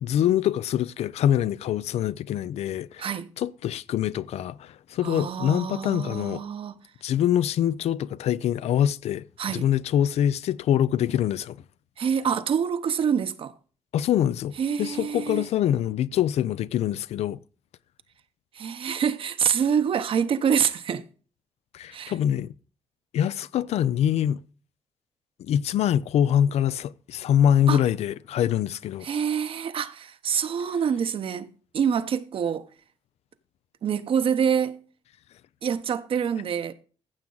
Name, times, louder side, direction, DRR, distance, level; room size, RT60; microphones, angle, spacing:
voice 1, 0.0-3.1 3.4-6.4 7.0-9.2 9.5-11.6 13.9-17.4 21.7-22.5 23.1-24.4 25.4-29.1, left 10 dB, 90° left, 0.4 m, -24 dB
voice 2, 5.0-6.8 9.4-9.7 12.0-13.5 14.6-15.5 18.5-21.0 21.9-22.1 27.7-27.8 29.0-31.5 31.7-32.6 33.8-34.8 35.6-36.7, right 7 dB, 60° right, 0.8 m, -26 dB
15.0 x 7.4 x 3.9 m
cardioid pair, 135°, 11 cm